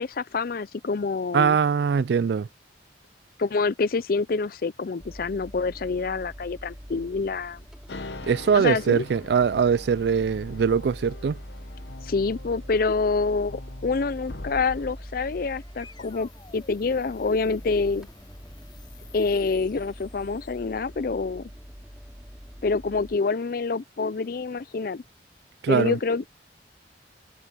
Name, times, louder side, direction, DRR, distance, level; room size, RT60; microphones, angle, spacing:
voice 1, 0.0-1.6 3.4-7.6 8.5-9.0 12.0-18.1 19.1-21.5 22.6-25.0 25.7-26.3, left 4 dB, 50° left, 0.5 m, -27 dB
voice 2, 1.3-2.5 8.3-11.4 25.6-26.0, right 6 dB, 60° right, 0.3 m, -22 dB
sound 1, 5.0-23.2, equal, 5° right, 2.7 m, -43 dB
sound 2, 7.9-14.9, left 3 dB, 70° left, 1.0 m, -43 dB
sound 3, 14.8-21.1, left 3 dB, 25° left, 7.8 m, -53 dB
head